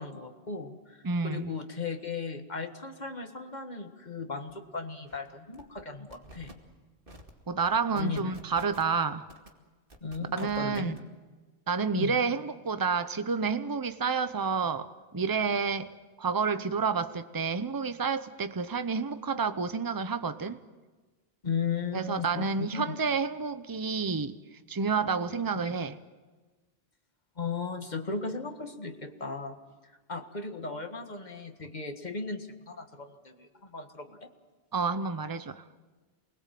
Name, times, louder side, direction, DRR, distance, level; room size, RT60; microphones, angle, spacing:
voice 1, 0.0-6.6 7.9-8.3 10.0-11.0 12.0-12.2 21.4-23.0 27.4-29.6 30.1-34.3, left 4 dB, 45° left, 1.9 m, -36 dB
voice 2, 1.0-1.5 7.5-9.3 10.3-10.9 11.7-15.9 16.2-20.6 21.9-24.4 24.7-26.0 34.7-35.6, right 5 dB, 20° right, 0.8 m, -29 dB
sound 1, 4.5-4.6 4.9-5.2 5.5-5.8 6.1-6.5 7.1-7.3 7.6-8.9 9.3-9.5 9.9-11.0, right 1 dB, 55° right, 2.6 m, -50 dB
28.0 x 21.0 x 7.7 m
omnidirectional pair, 1.1 m